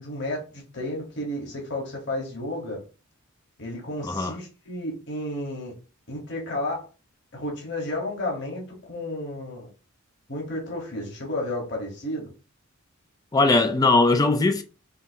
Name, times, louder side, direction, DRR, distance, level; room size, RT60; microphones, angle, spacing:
voice 1, 0.0-2.8 3.6-5.7 6.1-6.9 7.3-8.6 8.9-9.7 10.3-12.3, left 1 dB, 50° left, 1.6 m, -32 dB
voice 2, 4.0-4.4 13.3-14.6, left 3 dB, 15° left, 0.4 m, -20 dB
5.6 x 2.8 x 2.9 m
head